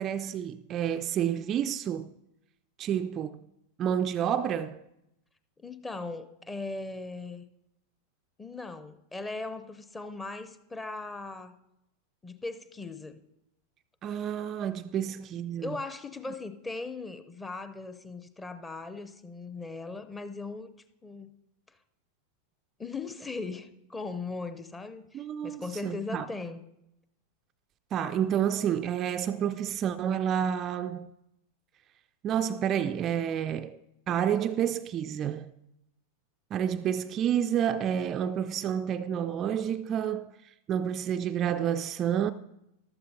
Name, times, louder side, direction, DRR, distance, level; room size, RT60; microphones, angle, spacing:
voice 1, 0.0-2.1 2.8-3.4 3.8-4.8 14.0-15.8 25.1-26.3 27.9-31.1 32.2-33.8 34.1-35.5 36.5-42.3, right 9 dB, 30° right, 0.3 m, -29 dB
voice 2, 5.6-7.5 8.4-11.5 12.2-13.2 15.6-20.7 21.0-21.4 22.8-26.6, left 3 dB, 10° left, 0.7 m, -38 dB
14.5 x 12.0 x 2.8 m
figure-of-eight pair, 90°, 0 cm